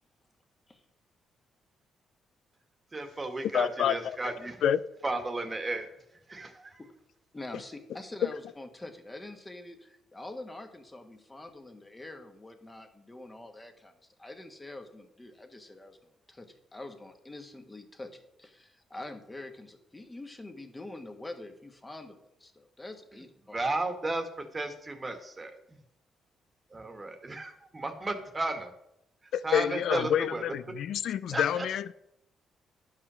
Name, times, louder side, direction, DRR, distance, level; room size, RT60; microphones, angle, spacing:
voice 1, 2.9-4.6 5.0-5.9 6.3-6.7 23.5-25.5 26.7-28.7 29.4-30.4 31.3-31.7, right 2 dB, 25° right, 1.6 m, -34 dB
voice 2, 3.5-4.3 4.6-4.8 29.3-31.9, left 9 dB, 75° left, 0.4 m, -28 dB
voice 3, 7.3-13.9 14.2-16.0 16.3-23.6, left 2 dB, 15° left, 1.5 m, -45 dB
10.5 x 5.7 x 6.2 m
cardioid pair, 90°, 0 cm